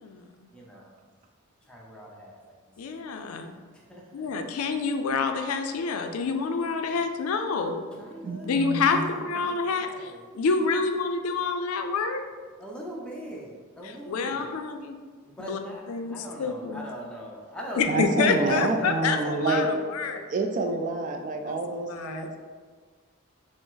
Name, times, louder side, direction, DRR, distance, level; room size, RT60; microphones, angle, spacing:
voice 1, 0.0-0.5 2.8-3.5 4.1-7.8 8.4-12.2 14.1-15.0 15.4-15.6 15.9-16.8 17.8-20.2 21.4-22.3, left 4 dB, 85° left, 6 dB, 0.4 m, -28 dB
voice 2, 0.5-1.0 1.6-2.4 2.8-3.1 3.7-4.3 7.9-10.3 12.6-14.6 15.2-20.2, right 1 dB, 5° left, -3 dB, 0.6 m, -41 dB
voice 3, 8.2-9.1 17.9-19.7 20.3-22.4, right 3 dB, 40° right, 3 dB, 0.3 m, -28 dB
4.8 x 2.0 x 3.9 m, 1.5 s
head